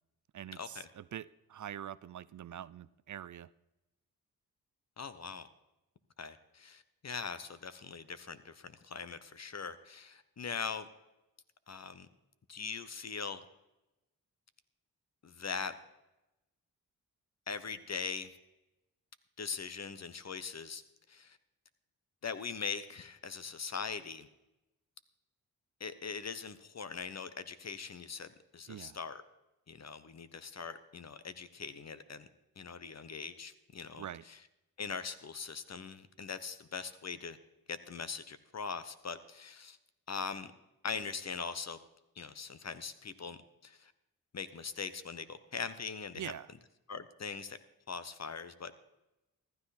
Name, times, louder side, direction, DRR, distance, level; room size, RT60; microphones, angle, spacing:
voice 1, 0.3-3.5 28.7-29.0 34.0-34.2 46.2-46.5, right 10 dB, 55° right, 19 dB, 0.5 m, -44 dB
voice 2, 5.0-5.5 6.2-10.9 11.7-12.1 12.5-13.4 15.2-15.7 17.5-18.3 19.4-20.8 21.1-21.4 22.2-24.3 25.8-29.2 29.7-32.3 32.6-34.4 34.8-37.4 37.7-39.8 40.1-40.5 40.8-41.8 42.2-43.4 43.6-43.9 44.3-46.3 46.9-47.6 47.9-48.7, left 5 dB, 45° left, 13 dB, 1.2 m, -41 dB
15.0 x 12.0 x 4.3 m, 0.95 s
supercardioid pair, 50°, 37 cm